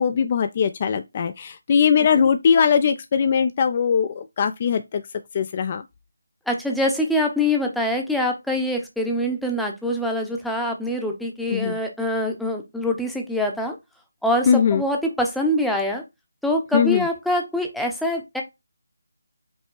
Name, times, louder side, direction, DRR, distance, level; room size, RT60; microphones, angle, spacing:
voice 1, 0.0-5.0 5.3-5.8 11.5-11.8 14.5-14.8 16.7-17.1, left 7 dB, 35° left, 0.3 m, -20 dB
voice 2, 6.5-13.8 14.2-16.0 16.4-18.4, left 1 dB, ahead, 0.7 m, -24 dB
5.2 x 3.2 x 3.1 m
figure-of-eight pair, 155°, 0 cm